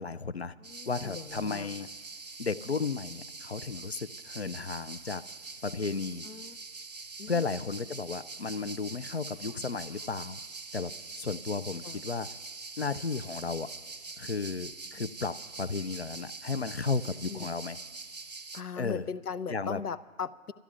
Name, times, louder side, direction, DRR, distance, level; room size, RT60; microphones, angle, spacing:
voice 1, 0.0-0.5 0.9-1.9 2.4-5.2 5.6-6.2 7.3-10.4 10.7-12.3 12.8-13.7 14.2-17.8 18.8-19.1 19.5-19.8, left 4 dB, 50° left, 17 dB, 0.4 m, -34 dB
voice 2, 0.6-1.7 6.2-6.6 7.2-7.3 11.8-12.0 17.3-17.6 18.5-20.5, left 6 dB, 85° left, 14 dB, 0.9 m, -39 dB
sound 1, 0.6-18.6, right 4 dB, 30° right, 0.7 m, -44 dB
25.5 x 14.0 x 2.4 m, 1.5 s
figure-of-eight pair, 160°, 44 cm